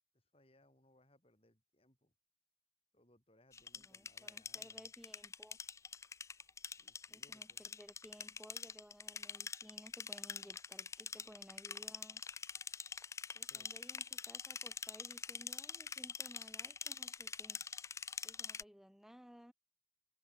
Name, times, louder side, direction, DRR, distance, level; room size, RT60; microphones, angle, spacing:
voice 1, 0.1-2.1 2.9-4.9 6.7-7.6 13.5-13.7, left 1 dB, 30° left, 8.0 m, -70 dB
sound 1, 3.5-18.6, left 6 dB, 15° left, 0.3 m, -45 dB
voice 2, 3.7-5.6 7.1-12.2 13.3-17.6 18.2-19.5, equal, ahead, 0.8 m, -58 dB
head